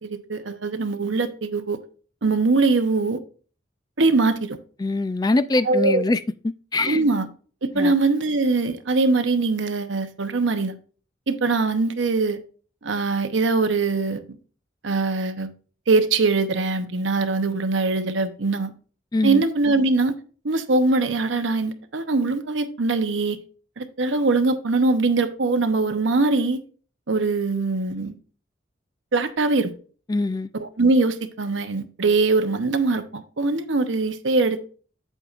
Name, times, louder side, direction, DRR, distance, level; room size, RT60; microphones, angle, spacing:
voice 1, 0.0-1.8 2.2-3.2 4.0-4.6 5.7-6.0 6.8-7.3 7.6-10.8 11.3-12.4 12.8-14.4 14.8-15.5 15.9-18.7 19.2-20.2 20.4-23.4 23.8-26.6 27.1-28.2 29.1-29.7 30.5-34.7, right 3 dB, 85° right, 0.9 m, -22 dB
voice 2, 4.8-6.2 6.7-7.0 7.8-7.9 19.1-19.4 30.1-30.5, left 2 dB, 20° left, 0.3 m, -23 dB
8.6 x 8.0 x 2.5 m
head